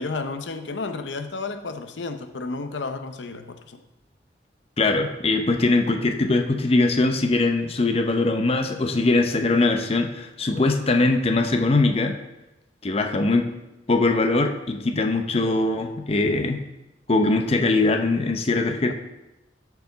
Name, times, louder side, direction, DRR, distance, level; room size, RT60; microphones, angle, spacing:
voice 1, 0.0-3.8 18.9-19.0, left 3 dB, 85° left, 8 dB, 0.7 m, -32 dB
voice 2, 4.8-12.1 12.8-13.5 13.9-16.6 17.1-18.9, left 2 dB, 35° left, 5 dB, 0.6 m, -21 dB
13.0 x 4.7 x 4.0 m, 0.96 s
head